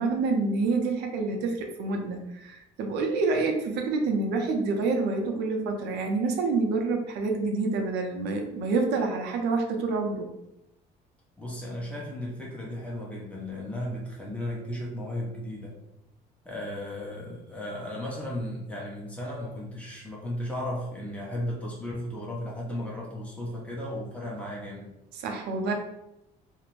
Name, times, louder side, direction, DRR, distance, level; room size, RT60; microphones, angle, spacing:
voice 1, 0.0-10.3 25.1-25.7, right 3 dB, 80° right, 3 dB, 0.5 m, -27 dB
voice 2, 11.4-15.7 16.4-24.9, left 1 dB, 10° left, -4 dB, 0.9 m, -35 dB
2.5 x 2.0 x 3.0 m, 0.87 s
cardioid pair, 110°, 17 cm